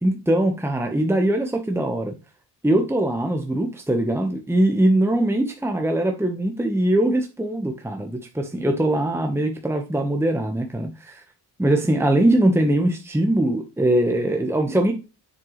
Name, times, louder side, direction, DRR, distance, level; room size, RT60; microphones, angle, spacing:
voice 1, 0.0-2.1 2.6-11.2 11.6-14.9, right 1 dB, 5° right, 3 dB, 1.3 m, -21 dB
7.8 x 5.8 x 3.3 m, 0.30 s
cardioid pair, 70°, 45 cm